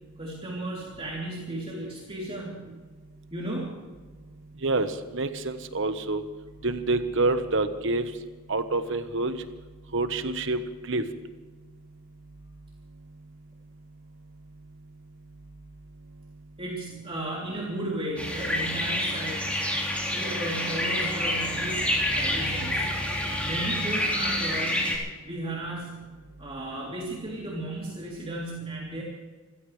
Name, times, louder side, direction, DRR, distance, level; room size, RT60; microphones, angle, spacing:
voice 1, 0.2-2.7 3.3-3.7 16.6-19.5 20.1-23.0 23.4-24.9 25.2-26.1 26.4-29.0, right 1 dB, 25° right, -4 dB, 3.3 m, -35 dB
voice 2, 5.1-6.2 6.6-8.0 8.5-9.4 9.9-10.6 10.9-11.0, right 2 dB, 60° right, 9 dB, 1.3 m, -26 dB
sound 1, 18.2-25.0, left 1 dB, 5° left, 3.9 m, -28 dB
27.5 x 15.5 x 3.3 m, 1.4 s
head